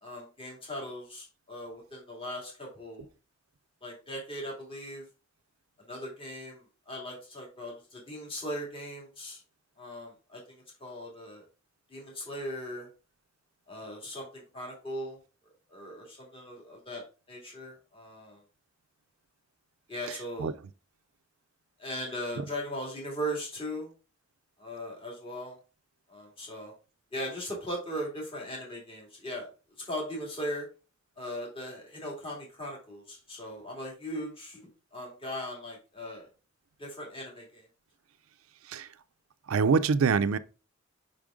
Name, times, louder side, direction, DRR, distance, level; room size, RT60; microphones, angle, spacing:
voice 1, 0.0-3.1 3.8-5.0 5.9-9.4 9.8-10.4 10.8-11.4 11.9-12.9 13.7-15.2 15.7-17.0 17.3-18.4 19.9-20.5 21.8-23.9 24.6-25.6 26.1-26.7 27.1-29.5 29.8-30.6 31.2-34.6 34.9-36.3 36.8-37.6, equal, 25° left, 2.2 m, -38 dB
voice 2, 20.1-20.5 38.7-38.9 39.5-40.4, right 5 dB, 90° right, 0.4 m, -25 dB
5.3 x 5.1 x 3.6 m
head